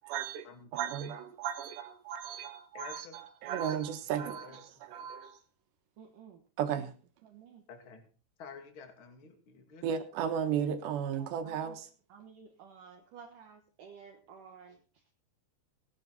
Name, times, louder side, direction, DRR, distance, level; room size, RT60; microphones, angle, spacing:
voice 1, 0.0-0.5 0.7-5.4 6.6-6.9 9.8-11.9, right 8 dB, 90° right, 3.6 m, -35 dB
voice 2, 2.7-3.2 4.2-4.6 7.7-8.0 8.4-9.9, left 5 dB, 35° left, 2.6 m, -50 dB
voice 3, 6.0-6.4 7.2-7.6 11.2-11.6 12.1-14.8, right 6 dB, 60° right, 2.6 m, -53 dB
17.5 x 11.0 x 4.1 m
omnidirectional pair, 4.8 m